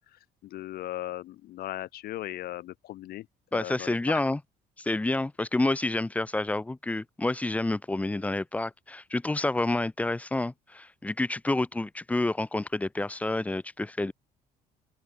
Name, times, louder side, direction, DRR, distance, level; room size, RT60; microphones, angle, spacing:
voice 1, 0.5-3.2 3.5-4.2, left 14 dB, 65° left, 0.6 m, -37 dB
voice 2, 3.5-4.4 4.8-14.1, left 2 dB, 10° left, 0.5 m, -29 dB
open air
cardioid pair, 110°, 17 cm